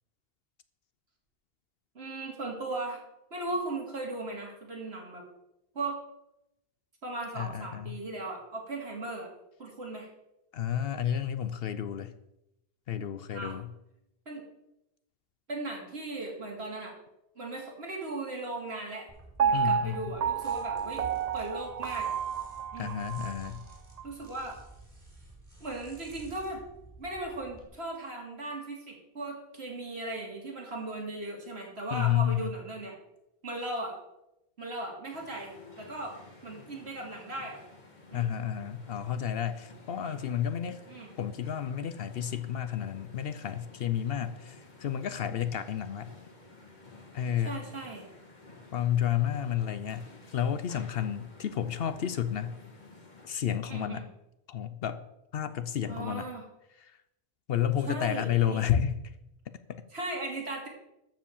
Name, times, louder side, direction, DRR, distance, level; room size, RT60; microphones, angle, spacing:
voice 1, 1.9-3.0 3.3-5.2 5.7-5.9 7.0-9.3 9.6-10.1 13.3-13.6 14.3-14.4 15.5-16.9 17.4-19.1 19.4-21.0 21.3-22.1 22.7-23.0 24.0-24.6 25.6-26.6 27.0-32.9 33.4-34.0 34.6-36.2 36.4-37.6 38.1-38.4 40.0-40.2 40.9-41.1 47.4-48.1 53.7-54.1 55.9-56.4 57.9-58.6 59.9-60.7, right 2 dB, 75° right, -1 dB, 2.9 m, -37 dB
voice 2, 7.4-8.0 10.5-12.1 12.9-13.7 19.5-20.1 22.8-23.6 31.9-32.5 38.1-40.8 41.2-46.1 47.1-47.6 48.7-52.6 53.2-54.1 54.5-55.0 55.3-56.3 56.8-57.0 57.5-59.0 59.7-59.8, left 9 dB, 70° left, 12 dB, 0.8 m, -31 dB
sound 1, 19.1-27.7, right 1 dB, 20° right, 4.1 m, -52 dB
Piano, 19.4-23.5 24.0-24.1, right 7 dB, 50° right, 0.5 m, -30 dB
sound 2, 35.1-53.4, left 3 dB, 45° left, 1.8 m, -53 dB
13.0 x 5.0 x 7.2 m, 0.86 s
omnidirectional pair, 1.1 m